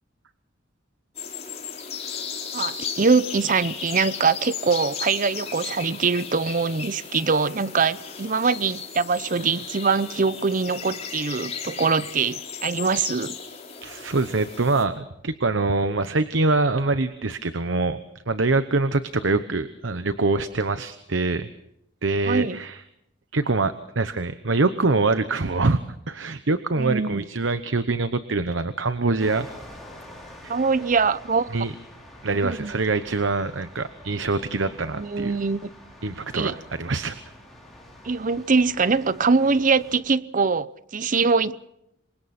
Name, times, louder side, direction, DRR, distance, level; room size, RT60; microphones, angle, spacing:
sound 1, 1.1-14.8, left 6 dB, 35° left, 4.0 m, -35 dB
voice 1, 2.5-13.4 22.3-22.6 26.8-27.2 30.5-31.6 32.3-32.7 35.0-35.7 36.3-36.5 38.0-41.7, right 4 dB, 45° right, 0.7 m, -23 dB
voice 2, 13.8-18.0 18.3-21.5 22.0-22.8 23.3-25.8 26.1-29.5 30.4-30.6 31.5-31.7 32.2-35.4 36.0-37.2, right 3 dB, 70° right, 1.0 m, -24 dB
sound 2, 29.2-40.0, left 1 dB, ahead, 6.2 m, -46 dB
27.5 x 24.0 x 4.3 m
head